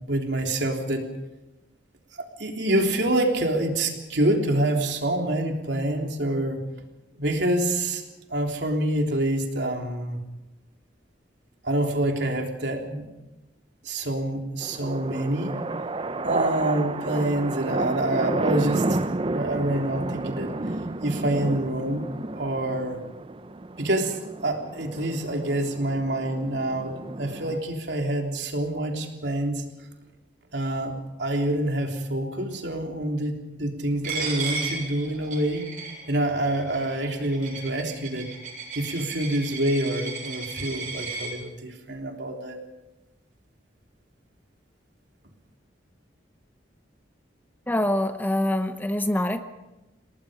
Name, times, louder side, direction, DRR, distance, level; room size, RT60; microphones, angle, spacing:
voice 1, 0.1-1.1 2.4-6.6 7.2-8.0 8.3-10.2 11.6-13.1 13.8-15.5 16.2-19.0 19.3-20.5 21.0-22.1 22.3-23.0 23.8-29.6 30.5-30.9 31.2-35.7 36.1-38.3 38.8-42.6, right 1 dB, 70° right, 2 dB, 3.5 m, -26 dB
sound 1, 14.6-27.6, right 2 dB, 30° right, 0.6 m, -31 dB
Coin (dropping), 34.0-41.3, right 4 dB, 45° right, 7.7 m, -35 dB
voice 2, 47.7-49.4, left 1 dB, 10° left, 8 dB, 0.9 m, -25 dB
28.5 x 19.0 x 5.2 m, 1.0 s
head